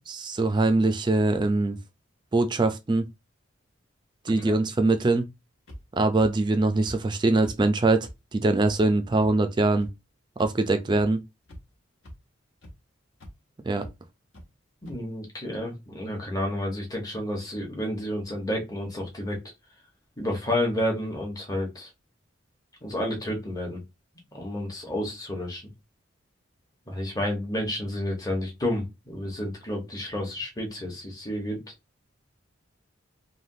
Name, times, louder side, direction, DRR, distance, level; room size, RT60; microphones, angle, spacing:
voice 1, 0.1-1.8 2.3-3.1 4.3-5.3 5.9-9.9 10.4-11.2 13.6-13.9, right 2 dB, 25° right, 0.4 m, -23 dB
sound 1, 5.7-5.8 6.2-6.3 6.8-7.0 7.4-7.5 8.0-8.1 8.6-8.7 9.2-9.3 9.8-9.9 10.4-10.5 11.0-11.1 11.5-11.7 12.0-12.1 12.6-12.7 13.2-13.3 13.8-13.9 14.3-14.4 14.9-15.0, equal, 65° left, 1.2 m, -42 dB
voice 2, 14.8-19.4 20.2-21.9 22.8-23.8 24.3-25.6 26.9-31.6, left 1 dB, 20° left, 0.9 m, -30 dB
3.3 x 2.3 x 2.6 m
head